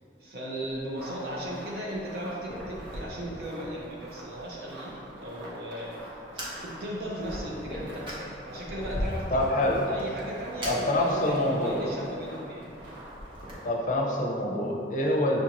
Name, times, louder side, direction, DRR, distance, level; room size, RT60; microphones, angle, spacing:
voice 1, 0.2-12.7, equal, 55° right, -4 dB, 0.5 m, -37 dB
Fire, 0.6-13.5, equal, 30° right, 0.8 m, -41 dB
sound 1, 0.9-13.9, right 1 dB, 80° right, 0.9 m, -47 dB
voice 2, 9.3-9.8 10.6-11.9 13.6-15.4, left 1 dB, 45° left, -1 dB, 0.5 m, -26 dB
6.4 x 2.5 x 2.9 m, 2.7 s
head